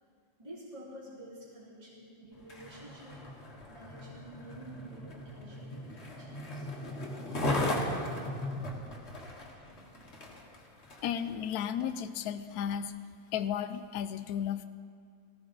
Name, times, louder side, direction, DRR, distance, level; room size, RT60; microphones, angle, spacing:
voice 1, 0.4-3.2 3.7-6.7 9.6-10.0, right 1 dB, 15° right, -8 dB, 2.9 m, -50 dB
Skateboard, 2.3-11.2 11.8-11.9, left 1 dB, 35° left, 1.7 m, -37 dB
voice 2, 11.0-12.9 13.3-14.7, left 9 dB, 90° left, 11 dB, 0.8 m, -34 dB
18.5 x 14.5 x 4.0 m, 2.1 s
omnidirectional pair, 2.2 m